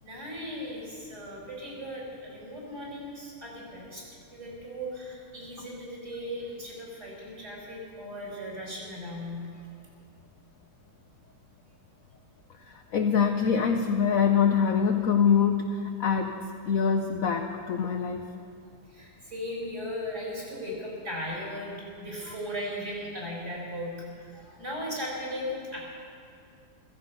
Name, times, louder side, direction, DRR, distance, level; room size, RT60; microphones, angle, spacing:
voice 1, 0.0-4.0 4.3-9.4 18.9-25.9, equal, 35° right, -4 dB, 5.5 m, -37 dB
voice 2, 12.7-18.3 22.3-22.4, left 6 dB, 60° left, 5 dB, 0.9 m, -25 dB
15.5 x 15.5 x 5.5 m, 2.4 s
omnidirectional pair, 2.1 m